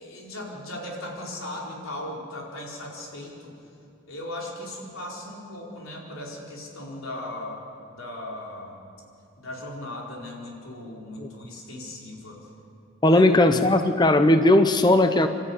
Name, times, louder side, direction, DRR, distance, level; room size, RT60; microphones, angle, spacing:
voice 1, 0.0-3.5 4.1-8.9 9.4-12.4 13.1-13.2, left 1 dB, 90° left, -2 dB, 4.5 m, -37 dB
voice 2, 13.0-15.3, left 1 dB, 20° left, 8 dB, 0.7 m, -18 dB
27.5 x 13.0 x 9.7 m, 2.6 s
head